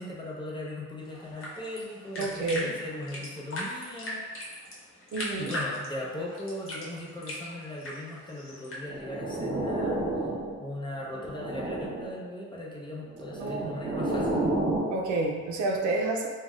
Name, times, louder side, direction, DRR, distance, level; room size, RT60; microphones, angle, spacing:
voice 1, 0.0-4.2 5.4-10.0 10.6-14.4, left 1 dB, 15° left, -4 dB, 0.6 m, -38 dB
sound 1, 1.0-8.8, left 1 dB, 45° left, 1.0 m, -39 dB
voice 2, 2.2-2.7 5.1-5.5 13.4-13.8 14.9-16.3, right 2 dB, 75° right, 0 dB, 0.5 m, -29 dB
sound 2, 8.8-10.6 11.1-12.2 13.1-15.0, right 2 dB, 20° right, 0.8 m, -31 dB
2.5 x 2.2 x 3.4 m, 1.5 s
cardioid pair, 90°, 30 cm